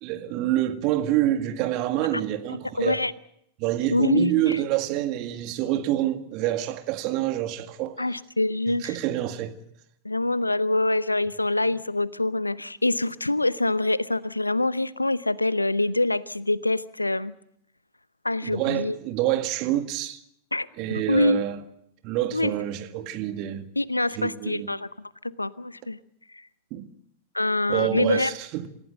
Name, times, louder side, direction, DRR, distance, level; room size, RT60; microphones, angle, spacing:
voice 1, 0.0-3.0 3.6-8.0 8.7-9.6 18.4-20.2 20.8-21.6 22.0-23.7 24.2-24.7 26.7-26.9 27.7-28.7, right 13 dB, 40° right, 1.9 m, -27 dB
voice 2, 2.8-3.1 3.9-4.6 8.0-8.9 10.0-17.3 18.2-19.0 20.5-21.4 22.3-22.5 23.8-25.1 25.4-26.0 27.3-28.3, left 2 dB, 85° left, 0.8 m, -25 dB
28.0 x 15.5 x 7.9 m
figure-of-eight pair, 90°, 0 cm